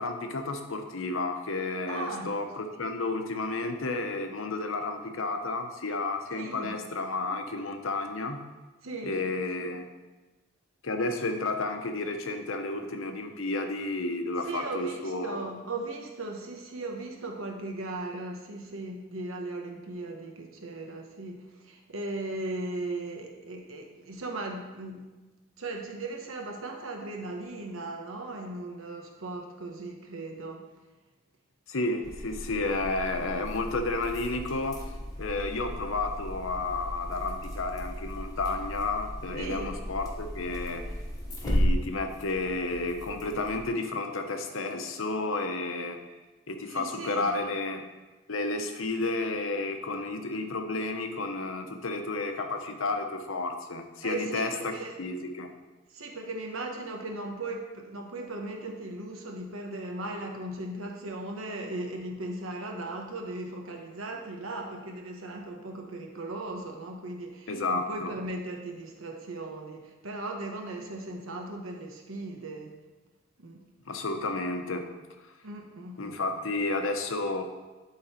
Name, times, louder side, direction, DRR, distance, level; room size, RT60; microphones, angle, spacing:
voice 1, 0.0-8.4 9.0-9.9 10.8-15.5 31.7-34.8 35.2-40.9 41.4-46.0 46.5-47.8 48.3-55.5 67.5-68.1 73.9-74.9 76.0-77.4, left 2 dB, 80° left, 6 dB, 0.9 m, -31 dB
voice 2, 1.9-2.3 6.3-6.7 8.8-9.4 14.4-25.1 25.6-30.7 39.3-39.7 46.7-47.5 48.8-48.9 54.0-55.0 55.9-72.8 73.4-73.7 75.4-76.5, right 2 dB, 85° right, 2 dB, 1.2 m, -37 dB
sound 1, 32.0-43.7, equal, 15° left, 1.1 m, -35 dB
11.5 x 3.9 x 4.4 m, 1.2 s
head